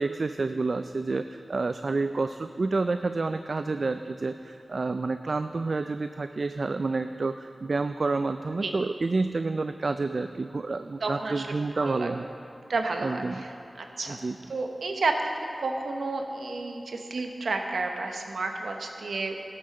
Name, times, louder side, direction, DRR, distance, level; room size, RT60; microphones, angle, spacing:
voice 1, 0.0-12.3 13.0-13.5 14.1-14.4, right 3 dB, 60° right, 9 dB, 0.3 m, -29 dB
voice 2, 11.0-11.5 11.8-12.1 12.7-14.2 14.5-15.3 15.6-19.4, right 3 dB, 90° right, 3 dB, 1.0 m, -31 dB
12.5 x 6.9 x 6.7 m, 2.7 s
wide cardioid pair, 55°, 0 cm